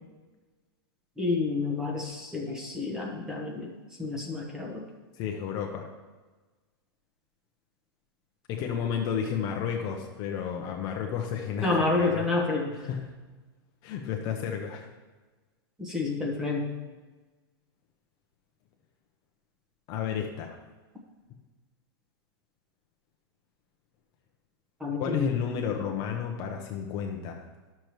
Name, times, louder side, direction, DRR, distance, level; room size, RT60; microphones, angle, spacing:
voice 1, 1.2-3.7 4.0-4.8 11.6-12.7 15.8-16.7 24.8-25.3, left 3 dB, 5° right, 0 dB, 1.0 m, -29 dB
voice 2, 5.1-5.9 8.5-12.3 12.8-13.1 13.8-14.9 19.9-20.6 25.0-27.5, left 7 dB, 30° left, 2 dB, 0.7 m, -32 dB
11.5 x 6.7 x 3.1 m, 1.3 s
supercardioid pair, 160°, 13 cm